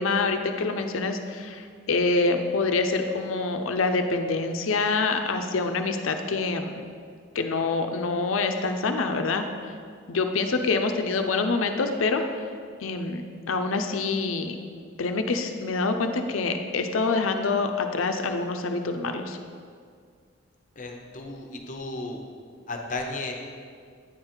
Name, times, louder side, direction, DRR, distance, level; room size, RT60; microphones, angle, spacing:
voice 1, 0.0-6.8 7.3-9.4 10.1-12.2 12.8-13.2 13.5-14.6 15.0-19.4, left 3 dB, 85° left, 6 dB, 0.6 m, -26 dB
voice 2, 20.8-22.2 22.7-23.3, left 2 dB, 40° left, 2 dB, 0.7 m, -34 dB
9.5 x 3.8 x 4.4 m, 2.1 s
head